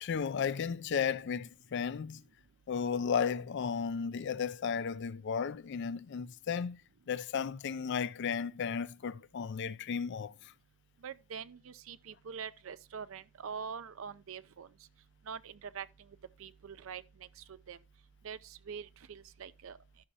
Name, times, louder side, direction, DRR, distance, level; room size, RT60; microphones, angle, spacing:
voice 1, 0.0-2.2 2.7-6.8 7.1-10.3, left 6 dB, 55° left, 0.4 m, -34 dB
voice 2, 11.0-14.7 15.3-15.9 16.4-17.0 17.5-17.8 18.2-19.8, right 6 dB, 65° right, 0.5 m, -44 dB
13.0 x 5.5 x 2.7 m
head